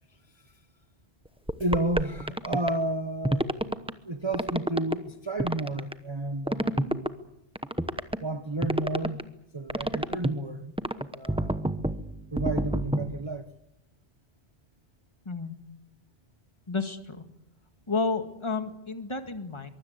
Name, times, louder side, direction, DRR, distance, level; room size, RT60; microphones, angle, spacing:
sound 1, 1.5-2.7 3.2-3.9 4.3-4.9 5.4-5.9 6.5-7.1 7.5-8.2 8.6-9.2 9.7-10.3 10.8-13.2, right 1 dB, 5° right, 0.9 m, -28 dB
voice 1, 1.6-3.6 4.0-7.0 8.2-9.3 9.5-10.7 11.1-11.6 12.3-13.5 18.6-18.7, right 2 dB, 25° right, 8 dB, 1.1 m, -31 dB
voice 2, 15.3-15.6 16.7-17.2 17.9-19.7, left 4 dB, 25° left, 7 dB, 2.0 m, -31 dB
23.5 x 23.0 x 8.1 m, 0.85 s
omnidirectional pair, 1.2 m